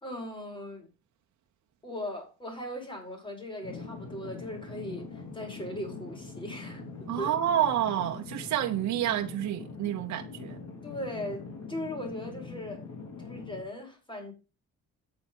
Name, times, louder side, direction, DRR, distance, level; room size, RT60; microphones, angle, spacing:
voice 1, 0.0-0.9 1.8-6.8 7.2-7.4 10.8-11.4 11.7-12.8 13.2-14.3, left 1 dB, 15° left, 4.9 m, -38 dB
sound 1, 3.6-13.6, left 4 dB, 60° left, 3.6 m, -43 dB
voice 2, 7.1-10.6, right 11 dB, 65° right, 1.0 m, -29 dB
9.1 x 7.1 x 5.4 m
cardioid pair, 90°, 30 cm